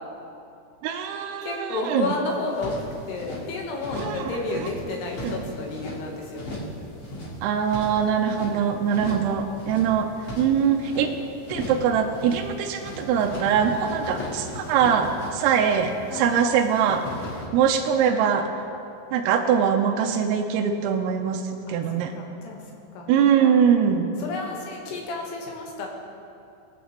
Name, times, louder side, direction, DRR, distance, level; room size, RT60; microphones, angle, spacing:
voice 1, 0.8-2.1 3.9-4.3 5.2-5.3 7.4-10.1 10.4-11.2 11.5-17.1 17.5-18.5 19.1-21.4 21.7-22.1 23.1-24.1, right 7 dB, 85° right, 3 dB, 2.4 m, -22 dB
voice 2, 1.4-2.8 3.1-6.6 8.9-9.1 9.6-9.9 13.7-13.9 16.1-16.3 17.1-17.3 21.7-21.8 22.2-22.6 22.9-23.5 24.2-25.9, left 3 dB, 70° left, 0 dB, 3.2 m, -32 dB
sound 1, 2.3-3.4 3.8-4.2 4.5-6.0 6.3-6.8 7.0-8.5 8.9-9.3 9.6-11.1 11.4-11.9 12.1-12.5 12.8-16.4 16.7-17.5, left 1 dB, 50° left, 1.6 m, -37 dB
21.0 x 8.1 x 3.1 m, 2.7 s
omnidirectional pair, 5.3 m